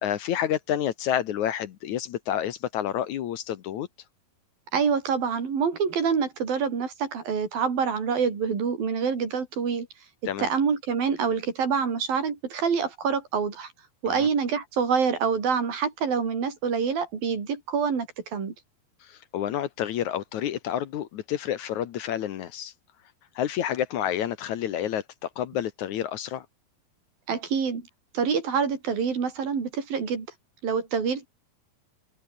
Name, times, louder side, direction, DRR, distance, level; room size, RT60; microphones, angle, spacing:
voice 1, 0.0-3.9 10.3-10.5 14.1-14.3 19.0-22.7 23.4-26.5, left 10 dB, 65° left, 2.2 m, -29 dB
voice 2, 4.7-9.9 10.4-13.7 14.0-18.1 18.3-18.5 27.3-27.8 28.1-30.3 30.6-31.3, right 6 dB, 70° right, 6.0 m, -26 dB
open air
omnidirectional pair, 4.2 m